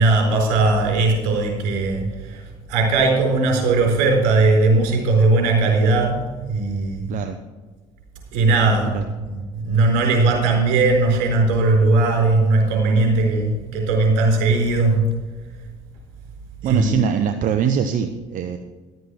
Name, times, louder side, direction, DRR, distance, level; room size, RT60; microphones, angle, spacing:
voice 1, 0.0-7.1 8.3-15.1 16.6-17.1, right 3 dB, 80° right, 1 dB, 4.3 m, -18 dB
voice 2, 16.6-18.6, right 8 dB, 55° right, 7 dB, 0.9 m, -22 dB
12.0 x 8.0 x 5.8 m, 1.3 s
supercardioid pair, 75°, 16 cm